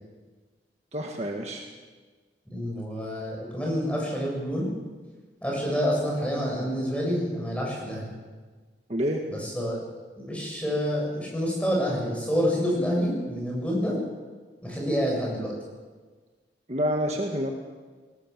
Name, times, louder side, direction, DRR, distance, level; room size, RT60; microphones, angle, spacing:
voice 1, 0.9-1.7 8.9-9.2 16.7-17.5, equal, 40° right, 1 dB, 1.8 m, -28 dB
voice 2, 2.5-4.7 5.4-8.1 9.3-9.8 10.2-14.0 14.6-15.5, equal, 5° left, -2 dB, 7.6 m, -28 dB
20.0 x 19.0 x 7.5 m, 1.4 s
head